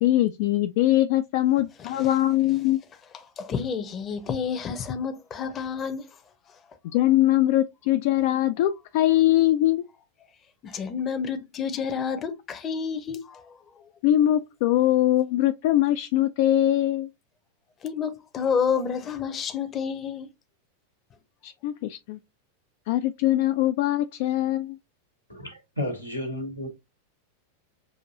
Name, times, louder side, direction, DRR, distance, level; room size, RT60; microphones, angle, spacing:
voice 1, 0.0-2.8 6.9-9.8 14.0-17.1 21.4-22.2 22.9-24.8, left 13 dB, 50° left, 0.3 m, -22 dB
voice 2, 1.8-2.1 3.1-6.1 6.5-6.6 10.6-13.8 17.8-20.3, left 6 dB, 25° left, 0.7 m, -30 dB
voice 3, 25.3-26.7, left 1 dB, 90° left, 1.3 m, -32 dB
6.2 x 2.6 x 2.6 m
figure-of-eight pair, 90°, 0 cm